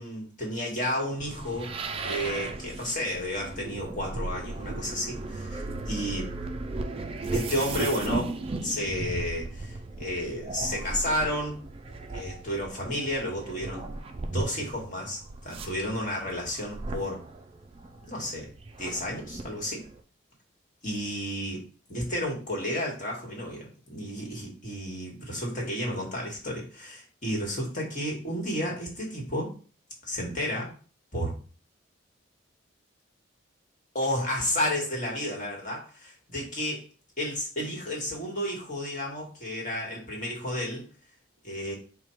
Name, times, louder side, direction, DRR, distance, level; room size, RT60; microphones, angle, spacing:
voice 1, 0.0-1.7 2.0-6.3 7.3-11.6 12.1-13.8 14.2-17.2 18.0-18.5 18.8-19.8 20.8-21.6 21.9-29.5 30.0-30.7 31.1-31.3 33.9-36.8 37.2-40.9 41.4-41.7, equal, 40° left, -1 dB, 1.4 m, -32 dB
sound 1, 1.2-20.0, right 2 dB, 30° right, 0.3 m, -36 dB
4.9 x 2.2 x 4.4 m, 0.38 s
head